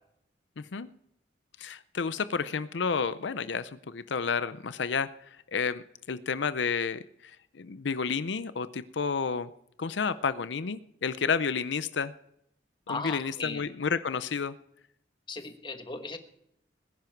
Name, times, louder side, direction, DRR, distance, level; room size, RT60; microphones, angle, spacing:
voice 1, 0.6-0.9 1.6-5.1 5.5-9.5 9.8-12.1 12.9-14.5, left 5 dB, 80° left, 14 dB, 0.6 m, -31 dB
voice 2, 12.9-13.7 15.3-16.2, left 3 dB, 25° left, 7 dB, 1.2 m, -37 dB
20.0 x 10.5 x 4.6 m, 0.77 s
head